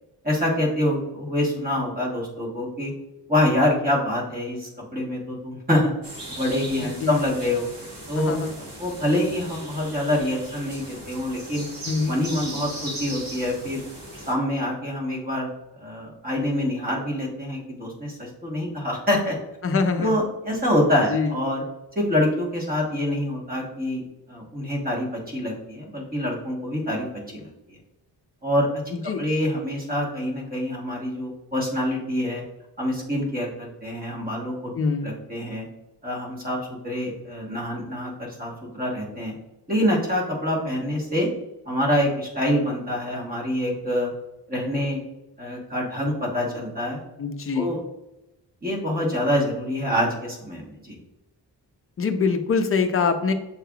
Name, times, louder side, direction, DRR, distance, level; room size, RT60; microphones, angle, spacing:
voice 1, 0.2-2.9 3.3-5.9 6.3-7.7 8.1-11.7 12.1-13.8 14.3-15.5 15.8-19.4 20.0-21.6 21.9-24.0 24.3-27.1 27.3-27.8 28.4-28.8 29.2-32.4 32.8-34.7 35.0-35.7 36.0-39.3 39.7-41.3 41.7-44.1 44.5-45.0 45.4-47.0 47.5-47.8 48.6-51.0, left 1 dB, 20° right, -2 dB, 1.2 m, -26 dB
sound 1, 6.0-14.3, right 1 dB, 55° right, 1.3 m, -38 dB
voice 2, 8.2-8.5 11.9-12.2 19.6-20.1 21.1-21.3 28.9-29.2 34.7-35.1 47.2-47.8 52.0-53.3, left 4 dB, 35° left, 7 dB, 0.4 m, -24 dB
7.2 x 3.3 x 2.3 m, 0.94 s
wide cardioid pair, 160°, 41 cm